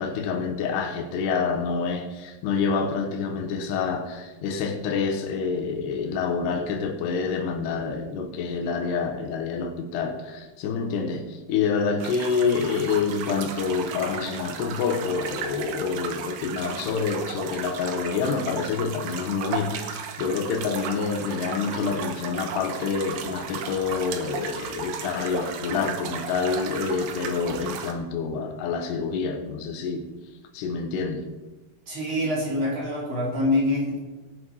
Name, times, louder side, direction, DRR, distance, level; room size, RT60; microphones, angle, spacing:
voice 1, 0.0-30.1 30.5-31.3, left 5 dB, 75° left, 3.2 m, -27 dB
sound 1, 12.0-27.9, right 7 dB, 70° right, 1.9 m, -35 dB
voice 2, 31.9-34.0, left 1 dB, 35° right, 3.1 m, -25 dB
18.5 x 7.0 x 4.8 m
omnidirectional pair, 4.9 m